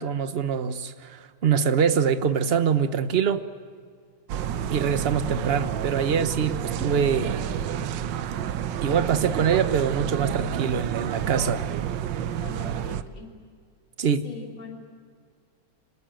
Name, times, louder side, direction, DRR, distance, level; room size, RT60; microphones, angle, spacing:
voice 1, 0.0-3.4 4.7-7.4 8.8-11.6 14.0-14.2, right 7 dB, 50° right, 11 dB, 0.7 m, -24 dB
sound 1, 4.3-13.0, right 9 dB, 65° right, 1.3 m, -29 dB
voice 2, 12.1-13.3 14.2-14.8, left 4 dB, 80° left, 1 dB, 3.9 m, -42 dB
26.0 x 19.5 x 9.1 m, 2.1 s
omnidirectional pair, 2.3 m